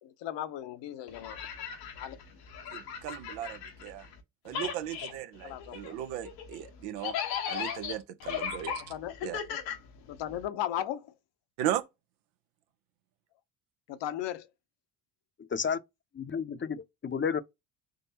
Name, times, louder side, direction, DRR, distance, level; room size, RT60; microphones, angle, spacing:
voice 1, 0.0-1.4 2.0-2.2 5.4-5.8 8.6-9.2 9.5-9.6 10.1-11.1 13.9-14.5, left 11 dB, 65° left, 0.8 m, -36 dB
sound 1, 1.1-4.2 4.5-10.5, left 8 dB, 90° left, 1.2 m, -37 dB
voice 2, 2.7-4.1 4.4-7.2 7.5-8.8 9.2-9.4 11.6-11.8, right 12 dB, 80° right, 0.7 m, -36 dB
voice 3, 16.1-17.4, left 6 dB, 25° left, 0.6 m, -31 dB
3.9 x 3.3 x 2.8 m
hypercardioid pair, 60°, 47 cm